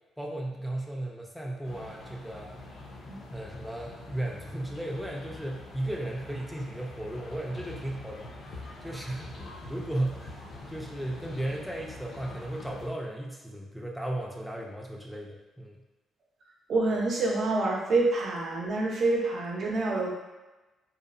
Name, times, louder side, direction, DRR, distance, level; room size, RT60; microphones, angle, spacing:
voice 1, 0.2-2.5 3.3-8.3 8.8-9.4 9.7-15.8, right 1 dB, ahead, -2 dB, 0.4 m, -35 dB
sound 1, 1.6-12.9, left 2 dB, 60° left, 0.5 m, -44 dB
voice 2, 16.7-20.1, right 2 dB, 60° right, -2 dB, 0.6 m, -27 dB
2.9 x 2.0 x 2.4 m, 1.1 s
supercardioid pair, 70°, 0 cm